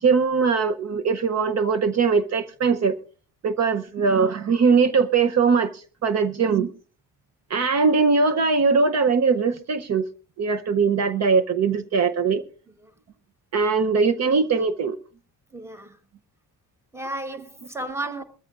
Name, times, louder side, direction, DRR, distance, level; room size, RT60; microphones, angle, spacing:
voice 1, 0.0-3.0 3.4-6.7 7.5-10.1 10.4-12.4 13.5-15.0, right 5 dB, 45° right, 0.7 m, -21 dB
voice 2, 15.5-16.0 16.9-18.2, right 2 dB, 5° right, 1.1 m, -33 dB
22.0 x 14.0 x 2.5 m
cardioid pair, 145°, 37 cm